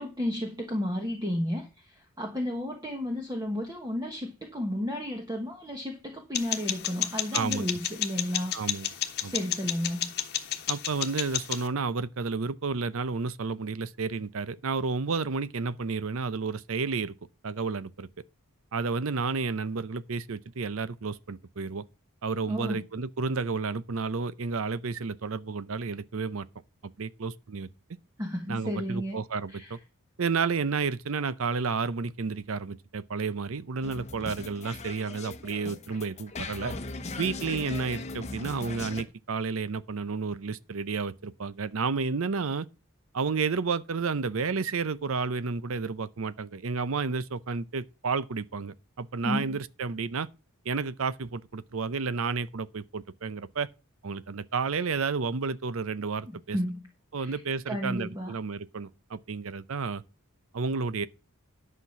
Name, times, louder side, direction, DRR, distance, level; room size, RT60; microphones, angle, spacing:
voice 1, 0.0-8.5 9.2-10.1 22.5-22.8 28.2-29.2 29.5-29.8 49.2-49.6 56.3-56.9 57.2-58.3, left 1 dB, 15° right, 1.4 m, -33 dB
sound 1, 6.3-11.7, left 10 dB, 50° left, 1.2 m, -32 dB
voice 2, 7.3-7.7 8.5-8.9 9.2-9.3 10.7-17.1 17.4-18.1 18.7-21.8 22.2-26.5 27.0-27.7 28.5-29.8 30.2-36.7 37.2-42.7 43.1-50.3 50.6-53.7 54.0-56.6 57.1-60.0 60.5-61.1, right 4 dB, 70° right, 0.6 m, -31 dB
sound 2, 33.8-39.0, left 3 dB, 30° left, 0.9 m, -39 dB
11.0 x 5.9 x 5.9 m
head